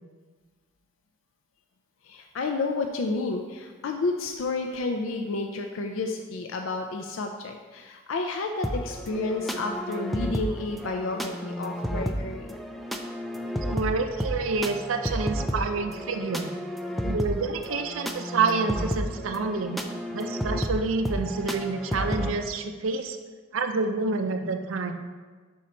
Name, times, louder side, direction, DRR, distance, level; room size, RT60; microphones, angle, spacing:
voice 1, 2.0-12.6, left 3 dB, 75° left, 4 dB, 0.4 m, -31 dB
sound 1, 8.6-22.3, equal, ahead, 0.3 m, -32 dB
voice 2, 13.6-16.5 17.0-19.8 20.1-23.2 23.5-24.9, right 4 dB, 75° right, 7 dB, 0.5 m, -28 dB
5.5 x 4.2 x 5.0 m, 1.4 s
head